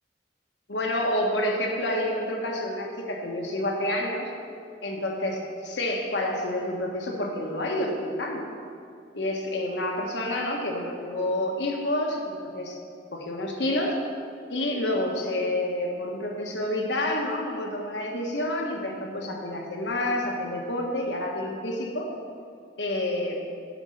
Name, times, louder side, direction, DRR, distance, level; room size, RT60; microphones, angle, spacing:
voice 1, 0.7-4.3 4.8-5.3 5.6-8.5 9.1-12.8 13.1-14.0 14.5-22.1 22.8-23.4, left 1 dB, 80° left, 0 dB, 1.4 m, -28 dB
9.8 x 5.6 x 6.4 m, 2.4 s
head